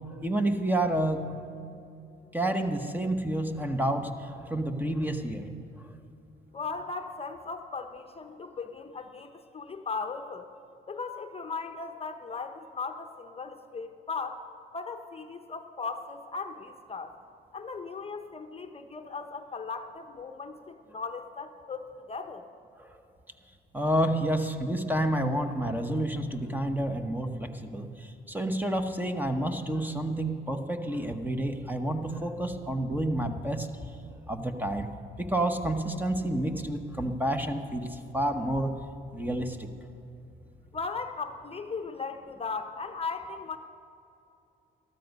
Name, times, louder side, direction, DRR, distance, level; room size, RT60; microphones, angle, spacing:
voice 1, 0.1-1.2 2.3-5.4 22.8-22.9 23.7-33.7 34.3-34.9 35.2-38.7 39.1-39.7, right 1 dB, 10° right, 6 dB, 1.0 m, -29 dB
voice 2, 6.5-10.5 10.9-14.4 14.7-17.1 17.5-22.5 40.7-43.6, left 4 dB, 30° left, 7 dB, 0.8 m, -37 dB
13.5 x 13.0 x 5.3 m, 2.8 s
cardioid pair, 90°, 20 cm